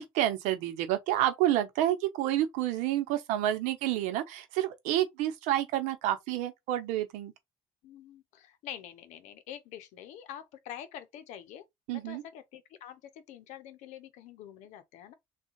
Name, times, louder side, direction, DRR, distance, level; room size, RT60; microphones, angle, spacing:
voice 1, 0.0-7.3 11.9-12.2, right 13 dB, 85° right, 0.8 m, -29 dB
voice 2, 7.8-11.6 11.9-15.1, left 10 dB, 75° left, 0.7 m, -46 dB
3.6 x 2.4 x 2.9 m
supercardioid pair, 90°, 12 cm